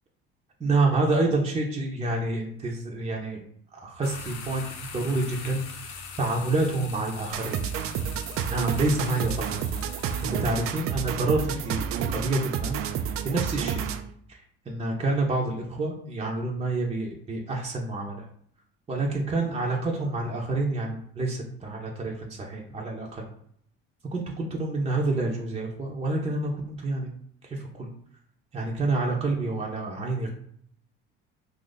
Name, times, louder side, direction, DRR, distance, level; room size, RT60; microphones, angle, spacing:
voice 1, 0.6-3.4 3.7-7.6 8.4-9.6 10.0-12.8 13.2-13.8 14.3-14.4 14.7-18.2 18.9-23.3 24.1-27.1 27.5-27.9 28.5-30.3, right 2 dB, 20° right, -2 dB, 0.7 m, -28 dB
sound 1, 4.0-10.8, left 5 dB, 75° left, 0.8 m, -42 dB
sound 2, 7.3-14.1, right 8 dB, 50° right, 0.4 m, -30 dB
2.8 x 2.5 x 3.9 m, 0.65 s
hypercardioid pair, 75°, 29 cm